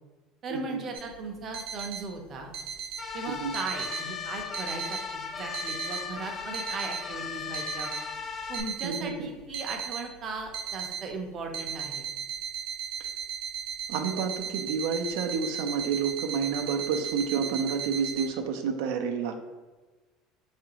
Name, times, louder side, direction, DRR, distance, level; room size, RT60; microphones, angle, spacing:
voice 1, 0.4-2.5 3.1-7.9 8.5-12.1, right 3 dB, 35° right, 2 dB, 0.5 m, -38 dB
sound 1, 0.9-18.3, right 7 dB, 70° right, 0.8 m, -37 dB
sound 2, 3.0-8.6, left 6 dB, 20° left, 0.3 m, -37 dB
voice 2, 8.8-9.3 13.0-13.1 13.9-19.3, right 6 dB, 85° right, 5 dB, 0.4 m, -29 dB
4.6 x 2.4 x 2.8 m, 1.3 s
cardioid pair, 155°, 0 cm